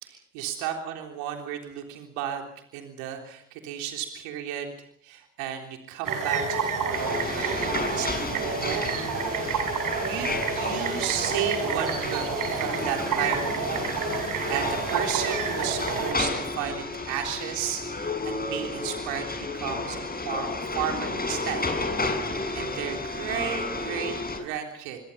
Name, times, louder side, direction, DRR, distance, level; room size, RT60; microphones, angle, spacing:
voice 1, 0.0-2.4 2.7-4.7 5.0-8.8 9.6-13.7 14.2-19.2 19.5-21.6 22.3-25.0, right 9 dB, 80° right, 3 dB, 3.6 m, -33 dB
sound 1, 6.1-16.1, right 5 dB, 60° right, 7.0 m, -29 dB
sound 2, 6.9-24.4, left 2 dB, 25° left, 6.8 m, -32 dB
28.5 x 22.5 x 5.7 m, 0.67 s
hypercardioid pair, 50°, 36 cm